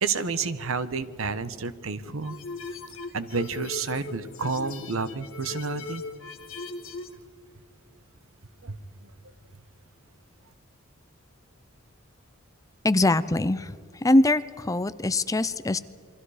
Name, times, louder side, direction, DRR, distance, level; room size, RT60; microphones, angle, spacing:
voice 1, 0.0-2.4 3.1-6.1 8.6-8.8, right 4 dB, 70° right, 13 dB, 1.1 m, -30 dB
sound 1, 2.2-7.2, left 2 dB, 65° left, 2.1 m, -38 dB
voice 2, 12.8-13.7 14.0-15.8, left 2 dB, 15° left, 15 dB, 0.5 m, -22 dB
28.5 x 23.5 x 5.0 m, 2.1 s
head